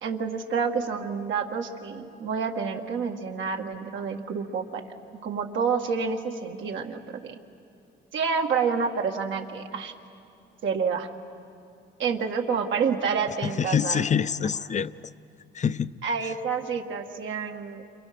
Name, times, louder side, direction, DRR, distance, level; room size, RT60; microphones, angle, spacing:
voice 1, 0.0-4.8 5.2-7.4 8.1-9.9 10.6-11.1 12.0-14.0 16.0-17.8, right 5 dB, 70° right, 2 dB, 2.0 m, -28 dB
voice 2, 13.4-14.9 15.5-16.0, left 7 dB, 35° left, 15 dB, 0.6 m, -26 dB
30.0 x 27.5 x 6.1 m, 2.6 s
cardioid pair, 90°, 20 cm